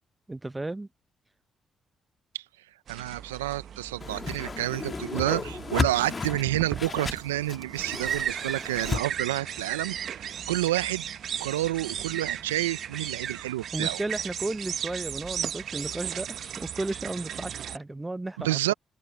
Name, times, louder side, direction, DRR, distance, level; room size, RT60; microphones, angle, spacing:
voice 1, 0.3-0.9 13.7-18.7, right 2 dB, 20° right, 1.1 m, -34 dB
sound 1, 2.9-17.8, right 9 dB, 60° right, 1.2 m, -36 dB
voice 2, 2.9-10.0 10.2-11.0 11.4-14.0 18.4-18.7, right 15 dB, 85° right, 0.8 m, -29 dB
Whoosh swoosh swish, 4.0-9.0, left 4 dB, 40° left, 1.9 m, -33 dB
hypercardioid pair, 40°, 0 cm